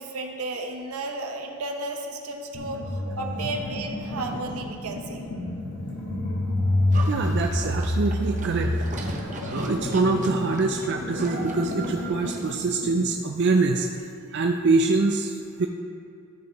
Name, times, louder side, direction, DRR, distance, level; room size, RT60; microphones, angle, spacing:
voice 1, 0.0-5.3, right 2 dB, 80° right, 3 dB, 0.9 m, -33 dB
sound 1, 2.5-13.0, left 1 dB, 65° left, 1.4 m, -29 dB
Livestock farm animals working animals, 6.9-12.7, right 2 dB, 35° right, 0.8 m, -38 dB
voice 2, 7.1-13.9 14.3-15.7, right 3 dB, 50° right, 3 dB, 0.4 m, -25 dB
13.5 x 4.4 x 4.1 m, 2.5 s
head